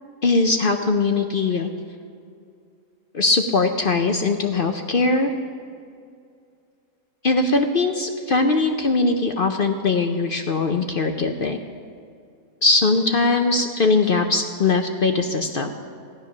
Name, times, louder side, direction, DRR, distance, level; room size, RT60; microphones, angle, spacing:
voice 1, 0.2-1.7 3.1-5.3 7.2-11.6 12.6-15.7, left 3 dB, 50° left, 5 dB, 0.7 m, -20 dB
15.0 x 11.5 x 5.9 m, 2.3 s
omnidirectional pair, 1.6 m